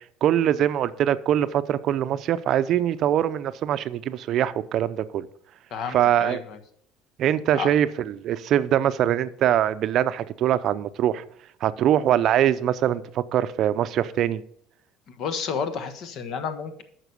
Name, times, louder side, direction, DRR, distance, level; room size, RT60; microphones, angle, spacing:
voice 1, 0.2-5.3 5.9-6.4 7.2-7.9 8.1-11.2 11.6-14.4, right 11 dB, 55° right, 0.5 m, -23 dB
voice 2, 5.7-6.6 7.5-7.7 15.1-16.8, left 6 dB, 55° left, 1.2 m, -31 dB
9.1 x 6.0 x 6.8 m
supercardioid pair, 110°, 0 cm